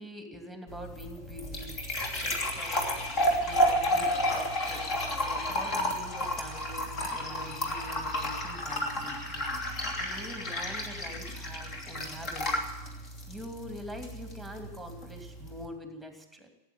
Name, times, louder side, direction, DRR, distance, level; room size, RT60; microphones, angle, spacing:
voice 1, 0.0-1.9 2.2-12.7 13.3-16.5, equal, ahead, 4 dB, 2.7 m, -45 dB
sound 1, 0.7-15.6, equal, 35° left, 2.8 m, -32 dB
17.5 x 9.1 x 9.1 m, 1.1 s
figure-of-eight pair, 90°, 0 cm